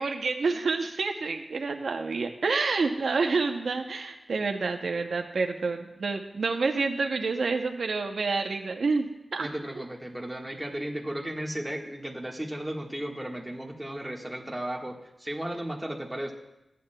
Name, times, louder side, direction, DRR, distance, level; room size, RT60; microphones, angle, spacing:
voice 1, 0.0-9.5, right 4 dB, 80° right, 5 dB, 0.6 m, -28 dB
voice 2, 9.4-16.3, right 1 dB, 10° right, 0 dB, 1.4 m, -35 dB
15.0 x 9.3 x 2.2 m, 0.92 s
cardioid pair, 65°, 0 cm